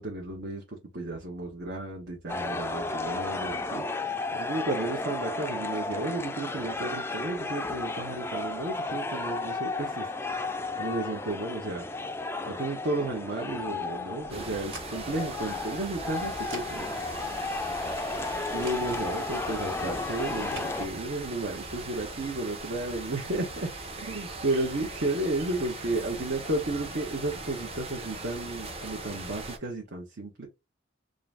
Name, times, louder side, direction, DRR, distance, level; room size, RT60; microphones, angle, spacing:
voice 1, 0.0-3.8 4.3-10.1 10.8-11.8 12.4-16.9 18.5-23.7 24.0-30.5, right 2 dB, 60° right, 1.0 m, -33 dB
sound 1, 2.3-20.9, left 3 dB, 15° left, 0.4 m, -33 dB
sound 2, 14.3-29.6, right 2 dB, 30° right, 0.9 m, -40 dB
sound 3, 20.2-20.7, right 2 dB, 85° right, 2.0 m, -49 dB
3.7 x 2.6 x 3.4 m
head